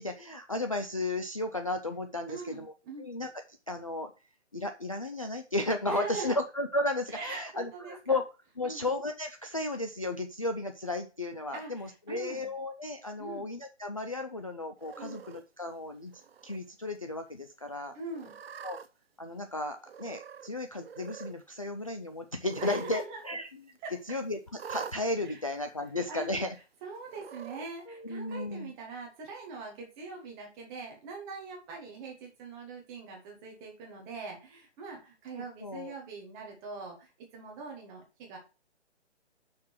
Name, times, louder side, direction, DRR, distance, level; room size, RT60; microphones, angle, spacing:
voice 1, 0.0-2.7 3.0-3.3 3.7-4.1 4.5-8.2 8.6-16.1 16.4-17.9 18.6-18.8 19.2-23.5 24.1-24.4 24.7-26.5 27.9-28.7 35.6-35.9, left 2 dB, 30° left, 5 dB, 0.4 m, -34 dB
voice 2, 2.3-3.1 5.9-6.3 7.1-8.2 8.6-8.8 11.5-12.5 13.2-13.5 14.9-15.2 17.9-18.3 22.6-23.2 23.8-24.0 25.2-25.4 26.1-26.3 26.8-38.4, right 4 dB, 10° right, 1 dB, 1.0 m, -42 dB
Cat, 14.8-15.4 16.1-16.6 16.9-17.0 18.1-18.9 19.8-20.5 20.8-21.3 22.4-23.1 23.3-23.4 24.6-25.0 25.9-26.0 27.1-27.7, right 7 dB, 55° right, 0.6 m, -44 dB
6.0 x 4.7 x 5.8 m, 0.32 s
hypercardioid pair, 165°, 35 cm